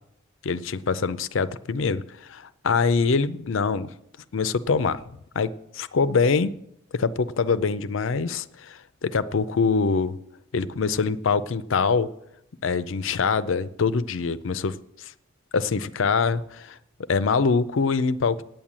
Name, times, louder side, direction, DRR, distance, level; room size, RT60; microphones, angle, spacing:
voice 1, 0.4-3.9 4.3-5.0 5.3-6.5 6.9-10.2 10.5-12.1 12.6-15.1 15.5-16.8 17.1-18.4, left 5 dB, 65° left, 14 dB, 0.5 m, -24 dB
9.0 x 8.8 x 7.4 m, 0.78 s
head